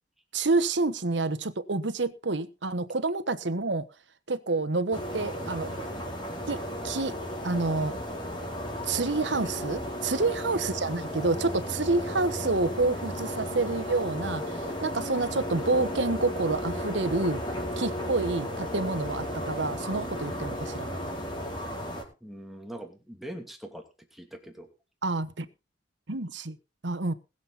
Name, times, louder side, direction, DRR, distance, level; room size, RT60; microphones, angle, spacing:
voice 1, 0.3-3.8 4.3-5.7 6.5-6.6 6.8-7.1 7.4-7.9 8.8-17.4 17.8-20.9 25.0-25.5 26.1-26.6 26.8-27.1, right 3 dB, 70° right, 1.2 m, -28 dB
sound 1, 4.9-22.0, equal, 25° left, 4.4 m, -34 dB
voice 2, 10.2-10.6 22.2-24.7, right 1 dB, ahead, 2.7 m, -43 dB
20.5 x 7.6 x 4.1 m
head